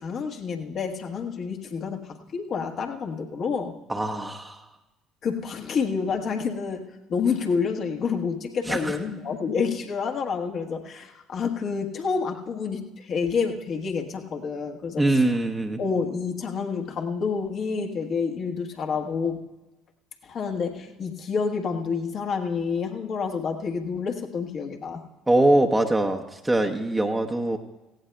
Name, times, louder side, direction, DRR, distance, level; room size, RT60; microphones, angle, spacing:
voice 1, 0.0-3.7 5.2-15.4 15.8-19.4 20.2-25.0, left 5 dB, 50° left, 3 dB, 1.4 m, -28 dB
voice 2, 3.9-4.6 8.7-9.0 15.0-15.8 25.3-27.6, right 1 dB, 10° right, 2 dB, 0.9 m, -23 dB
17.5 x 16.0 x 2.3 m, 1.1 s
hypercardioid pair, 60°, 0 cm